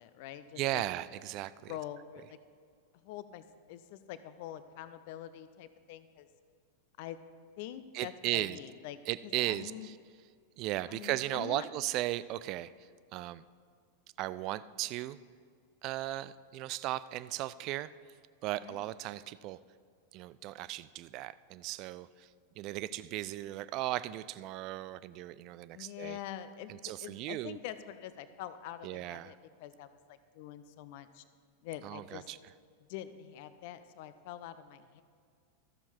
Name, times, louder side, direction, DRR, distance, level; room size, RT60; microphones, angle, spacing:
voice 1, 0.0-0.8 1.6-2.4 3.0-6.3 7.0-7.2 7.6-9.9 10.9-11.7 18.6-18.9 25.7-31.2 31.6-32.3 32.9-35.0, left 11 dB, 50° left, 13 dB, 0.5 m, -45 dB
voice 2, 0.6-1.7 7.9-8.6 9.1-10.0 10.6-12.7 13.1-13.4 14.2-15.2 15.8-17.9 18.4-19.6 20.1-22.3 22.6-26.2 26.7-27.6 28.8-29.3 31.8-32.4, right 15 dB, 40° right, 17 dB, 0.3 m, -36 dB
13.0 x 7.1 x 4.5 m, 2.1 s
figure-of-eight pair, 90°, 0 cm